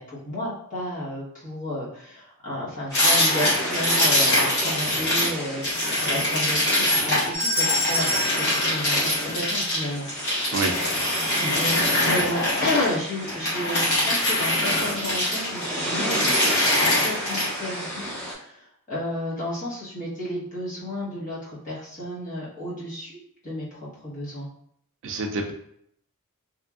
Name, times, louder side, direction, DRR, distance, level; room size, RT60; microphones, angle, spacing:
voice 1, 0.0-10.4 11.4-16.3 16.6-23.1 23.4-24.5, left 1 dB, 35° left, -7 dB, 1.1 m, -32 dB
sound 1, 2.9-5.3 5.6-12.9 13.3-15.6 15.9-17.5, left 1 dB, 50° left, 1.2 m, -23 dB
sound 2, 2.9-18.3, equal, 15° left, 0.8 m, -33 dB
sound 3, 7.3-9.7, left 1 dB, 10° right, 1.1 m, -28 dB
voice 2, 10.5-11.0 25.0-25.5, right 3 dB, 55° right, 3 dB, 0.4 m, -28 dB
2.9 x 2.5 x 2.3 m, 0.70 s
head